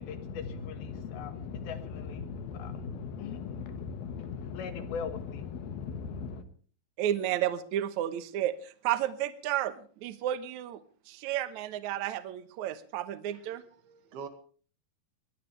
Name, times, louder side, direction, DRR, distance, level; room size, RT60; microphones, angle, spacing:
voice 1, 0.0-6.4, left 6 dB, 75° left, 9 dB, 3.4 m, -38 dB
voice 2, 7.0-10.8 11.1-13.6, right 12 dB, 65° right, 12 dB, 2.1 m, -32 dB
voice 3, 13.3-14.3, right 6 dB, 80° right, 8 dB, 3.9 m, -46 dB
21.5 x 20.0 x 3.3 m, 0.43 s
omnidirectional pair, 4.4 m